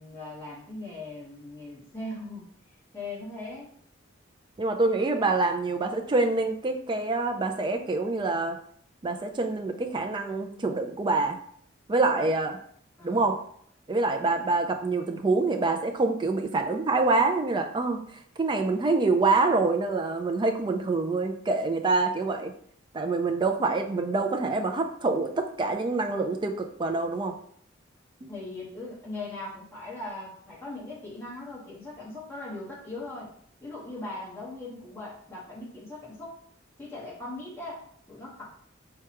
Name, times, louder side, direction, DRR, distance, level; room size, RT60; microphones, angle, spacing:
voice 1, 0.0-2.4 2.9-3.7 12.2-12.3 13.0-13.3 28.3-33.3 33.6-36.3 36.8-38.5, left 2 dB, 10° left, -7 dB, 1.2 m, -39 dB
voice 2, 4.6-8.6 9.0-11.4 11.9-12.6 13.0-13.4 13.9-22.5 22.9-27.3 28.2-28.3, right 3 dB, 25° right, 5 dB, 0.3 m, -26 dB
4.6 x 2.3 x 2.9 m, 0.63 s
head